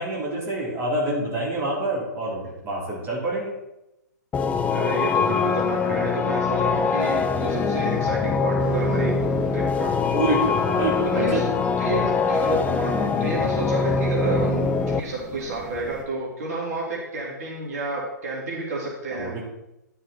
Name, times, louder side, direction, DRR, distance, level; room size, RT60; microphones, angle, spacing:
voice 1, 0.0-3.5 6.7-6.9 10.1-11.5 11.8-11.9 12.4-12.6 19.1-19.4, right 1 dB, 25° right, -4 dB, 3.7 m, -27 dB
sound 1, 4.3-15.0, left 5 dB, 15° left, 0.5 m, -23 dB
voice 2, 4.7-9.1 9.5-9.9 11.1-11.5 11.8-19.3, right 2 dB, 55° right, -3 dB, 3.1 m, -30 dB
sound 2, 8.6-16.0, right 2 dB, 10° right, 1.1 m, -41 dB
11.5 x 6.8 x 4.3 m, 0.90 s
hypercardioid pair, 125°, 10 cm